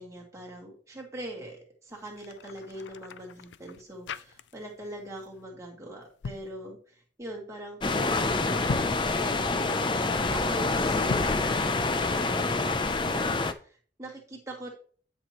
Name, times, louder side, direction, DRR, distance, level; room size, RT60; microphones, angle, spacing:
voice 1, 0.0-9.9 10.3-12.8 13.1-14.7, right 1 dB, 15° right, -1 dB, 2.4 m, -42 dB
sound 1, 1.9-4.9 5.1-5.4 6.0-6.5 8.5-9.1 11.0-11.5, left 5 dB, 80° left, 0.4 m, -39 dB
sound 2, 7.8-13.5, left 3 dB, 25° left, 0.5 m, -27 dB
10.5 x 6.1 x 3.0 m, 0.43 s
head